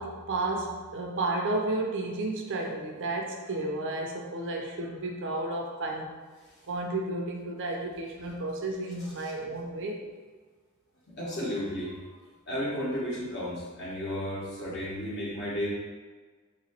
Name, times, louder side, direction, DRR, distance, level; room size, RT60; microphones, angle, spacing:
voice 1, 0.0-6.1 6.7-10.1, right 2 dB, 60° right, 1 dB, 0.6 m, -32 dB
voice 2, 11.2-12.0 12.5-15.7, equal, 55° left, -6 dB, 1.3 m, -33 dB
3.2 x 3.0 x 4.4 m, 1.5 s
head